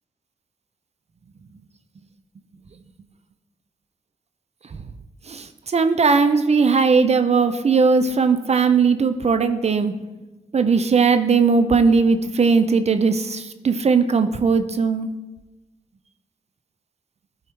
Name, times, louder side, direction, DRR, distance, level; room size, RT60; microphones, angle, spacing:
voice 1, 5.3-9.9 10.5-15.1, right 5 dB, 45° right, 10 dB, 0.6 m, -18 dB
12.0 x 4.8 x 4.7 m, 1.1 s
cardioid pair, 55°, 15 cm